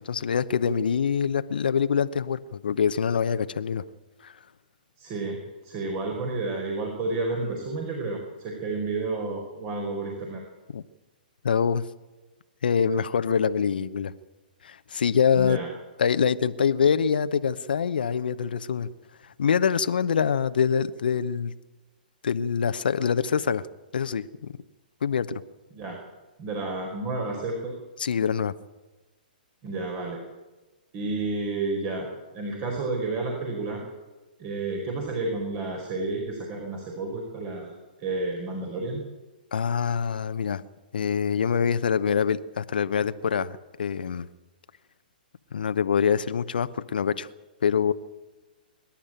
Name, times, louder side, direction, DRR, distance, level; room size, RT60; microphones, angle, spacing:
voice 1, 0.0-3.8 4.2-4.3 10.7-10.8 11.4-11.8 12.6-14.1 14.6-15.6 16.0-18.9 19.4-21.5 22.2-23.7 23.9-24.5 25.0-25.4 28.0-28.5 39.5-40.6 40.9-44.3 45.5-47.3 47.6-47.9, left 7 dB, 70° left, 12 dB, 0.9 m, -25 dB
voice 2, 5.0-5.4 5.6-10.4 15.3-15.7 25.7-26.0 26.4-27.7 29.6-30.2 30.9-32.1 32.3-33.8 34.4-39.0, right 3 dB, 35° right, 1 dB, 4.9 m, -31 dB
25.0 x 12.0 x 9.0 m, 1.2 s
hypercardioid pair, 125°, 5 cm